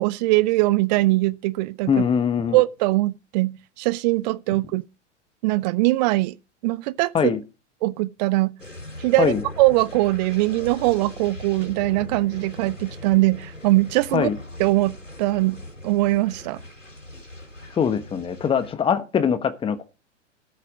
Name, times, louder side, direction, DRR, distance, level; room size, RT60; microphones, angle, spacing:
voice 1, 0.0-1.9 2.5-4.8 5.4-6.3 6.6-7.3 7.8-8.5 9.0-14.3 14.6-15.6 15.8-16.6, right 19 dB, 35° right, 0.6 m, -21 dB
voice 2, 1.9-2.6 7.1-7.4 9.2-9.4 14.1-14.4 17.7-19.9, left 7 dB, 15° left, 1.2 m, -22 dB
sound 1, 8.6-18.7, left 1 dB, 90° left, 3.5 m, -40 dB
14.0 x 7.4 x 5.0 m
figure-of-eight pair, 95°, 36 cm